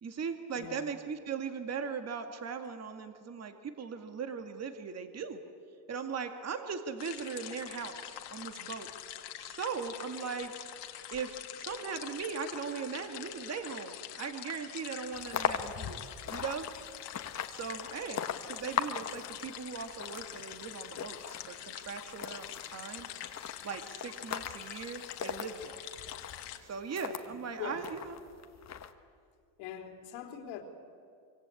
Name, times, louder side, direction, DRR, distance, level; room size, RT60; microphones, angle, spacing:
voice 1, 0.0-5.4 5.9-8.9 9.4-10.5 11.1-16.0 16.3-16.7 17.6-23.1 23.6-25.9 26.6-28.2, right 6 dB, 30° right, 7 dB, 2.2 m, -39 dB
sound 1, 7.0-26.6, left 12 dB, 60° left, 2.1 m, -45 dB
sound 2, 15.1-27.3 27.8-28.9, left 8 dB, 35° left, 1.5 m, -40 dB
voice 2, 27.6-27.9 29.6-30.6, left 8 dB, 85° left, 4 dB, 3.8 m, -42 dB
25.0 x 24.5 x 8.5 m, 2.3 s
cardioid pair, 125°, 47 cm